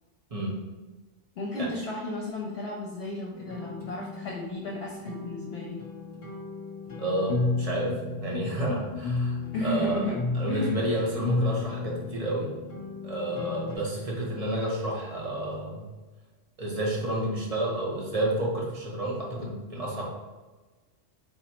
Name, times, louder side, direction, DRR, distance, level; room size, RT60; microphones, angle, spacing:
voice 1, 1.4-5.8 9.5-10.8, left 1 dB, 70° left, -3 dB, 0.9 m, -33 dB
sound 1, 3.3-13.8, left 3 dB, 35° left, 0.6 m, -33 dB
voice 2, 7.0-9.4 9.6-10.0 10.4-12.5 13.0-15.8 16.6-20.0, right 1 dB, 35° right, -3 dB, 0.7 m, -30 dB
3.7 x 2.0 x 4.3 m, 1.3 s
omnidirectional pair, 1.2 m